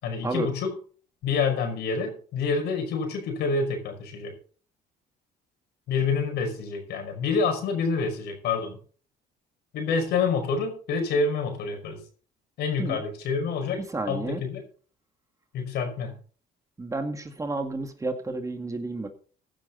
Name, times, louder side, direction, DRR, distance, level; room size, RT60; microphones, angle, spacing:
voice 1, 0.0-0.7 1.2-4.3 5.9-8.8 9.7-12.0 12.6-13.8 14.1-14.6 15.5-16.1, left 4 dB, 75° left, 5 dB, 5.4 m, -27 dB
voice 2, 13.7-14.4 16.8-19.1, right 2 dB, 20° right, 6 dB, 2.0 m, -31 dB
16.0 x 10.0 x 4.1 m, 0.41 s
cardioid pair, 110°, 17 cm